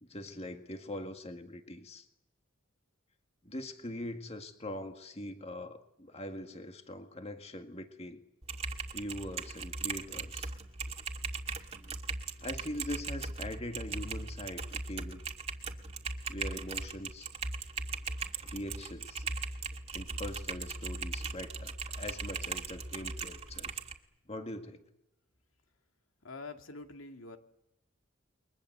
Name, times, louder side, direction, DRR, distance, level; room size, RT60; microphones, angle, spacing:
voice 1, 0.0-2.1 3.4-8.2 8.9-10.5 11.8-12.0 12.4-15.2 16.3-17.3 18.4-19.3 19.9-23.8 24.3-24.8, left 1 dB, 30° left, 6 dB, 1.9 m, -42 dB
Typing, 8.4-23.9, right 4 dB, 30° right, 2.2 m, -39 dB
voice 2, 26.2-27.4, left 3 dB, 75° left, 5 dB, 2.3 m, -45 dB
29.5 x 22.5 x 7.9 m, 0.83 s
head